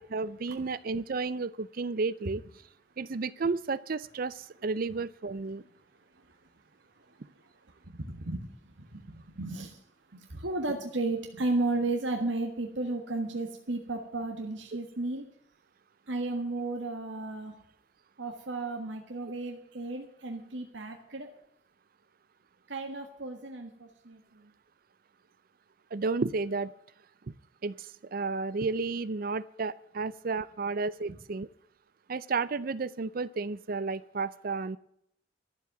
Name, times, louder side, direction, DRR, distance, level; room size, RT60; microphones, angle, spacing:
voice 1, 0.1-2.4 3.0-5.6 25.9-26.7 27.6-27.8 28.1-31.5 32.1-34.8, right 4 dB, 50° right, 17 dB, 0.5 m, -32 dB
voice 2, 7.7-9.8 10.1-15.2 16.1-17.5 18.2-21.3 22.7-24.5 31.1-31.2, right 2 dB, 75° right, 3 dB, 1.6 m, -34 dB
12.5 x 7.6 x 9.3 m, 0.71 s
head